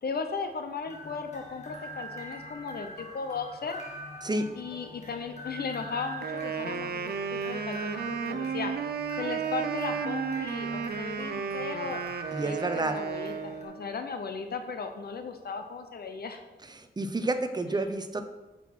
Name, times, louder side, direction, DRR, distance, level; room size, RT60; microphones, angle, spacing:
voice 1, 0.0-3.8 4.5-8.7 9.2-12.0 12.4-16.4 17.7-17.9, left 5 dB, 65° left, 6 dB, 0.8 m, -36 dB
sound 1, 0.9-13.6, equal, 40° left, 1.8 m, -43 dB
Wind instrument woodwind instrument, 6.2-13.8, right 6 dB, 65° right, 0.6 m, -33 dB
voice 2, 12.3-13.0 17.0-18.3, right 2 dB, 25° right, 8 dB, 0.7 m, -29 dB
8.7 x 5.9 x 6.0 m, 1.1 s
wide cardioid pair, 140°, 17 cm